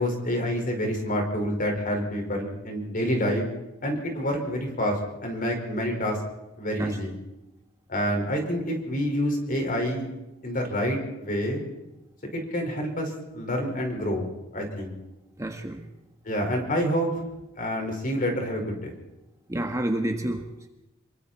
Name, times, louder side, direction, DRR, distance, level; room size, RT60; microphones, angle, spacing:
voice 1, 0.0-3.5 3.8-6.2 6.6-7.2 7.9-10.1 10.4-11.7 12.3-14.3 14.5-14.9 16.3-17.1 17.6-18.9, equal, 45° left, 2 dB, 5.3 m, -27 dB
voice 2, 15.4-15.8 19.5-20.7, right 1 dB, 15° right, 4 dB, 1.5 m, -29 dB
27.0 x 23.0 x 4.5 m, 0.95 s
head